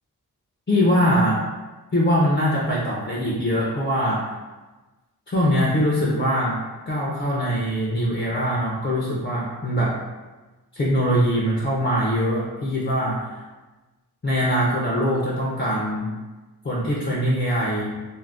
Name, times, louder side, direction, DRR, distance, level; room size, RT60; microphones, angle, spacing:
voice 1, 0.7-1.5 1.9-4.3 5.3-10.0 10.7-13.3 14.2-16.2 16.6-18.0, equal, 30° left, -5 dB, 0.5 m, -22 dB
2.5 x 2.1 x 3.3 m, 1.2 s
wide cardioid pair, 90°, 39 cm